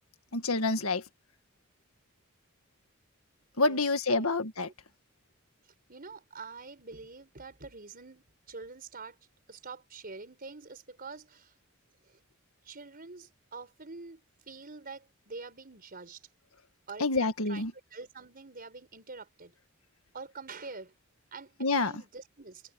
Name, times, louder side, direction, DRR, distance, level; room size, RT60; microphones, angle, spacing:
voice 1, 0.3-1.0 3.6-4.7 17.0-17.7 21.6-21.9, left 3 dB, 85° left, 1.9 m, -27 dB
voice 2, 5.9-9.2 9.5-11.5 12.1-12.2 12.6-14.2 14.5-16.2 16.9-19.5 20.1-20.9 21.3-22.6, right 4 dB, 45° right, 4.8 m, -46 dB
head